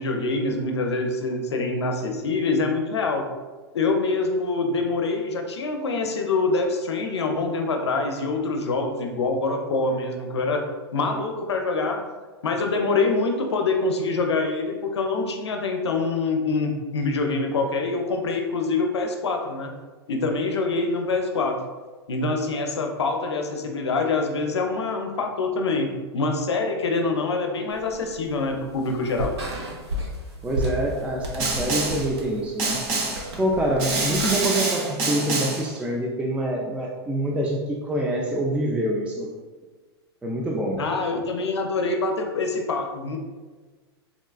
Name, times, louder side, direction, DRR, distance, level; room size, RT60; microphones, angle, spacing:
voice 1, 0.0-3.3 3.7-12.0 12.4-19.7 20.1-21.6 22.1-29.4 40.8-43.2, left 3 dB, 90° left, 3 dB, 0.5 m, -25 dB
sound 1, 27.7-34.3, left 1 dB, 80° right, 0.7 m, -34 dB
voice 2, 30.4-32.8 33.4-39.3 40.2-40.9, right 1 dB, 10° right, -1 dB, 0.3 m, -26 dB
Snare drum, 31.4-32.1 32.6-33.3 33.8-35.7, right 3 dB, 45° right, 0.8 m, -26 dB
3.7 x 2.2 x 2.3 m, 1.3 s
hypercardioid pair, 110°, 14 cm